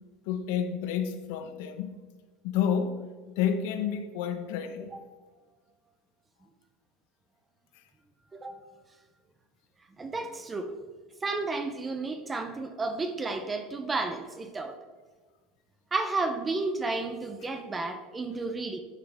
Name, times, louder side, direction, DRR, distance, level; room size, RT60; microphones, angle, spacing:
voice 1, 0.3-2.0 2.4-3.0 3.4-4.9, left 8 dB, 55° left, 0.7 m, -29 dB
voice 2, 10.0-10.7 11.2-14.8 15.9-18.8, right 3 dB, 10° right, 0.5 m, -32 dB
11.0 x 5.5 x 3.4 m
supercardioid pair, 175°, 0 cm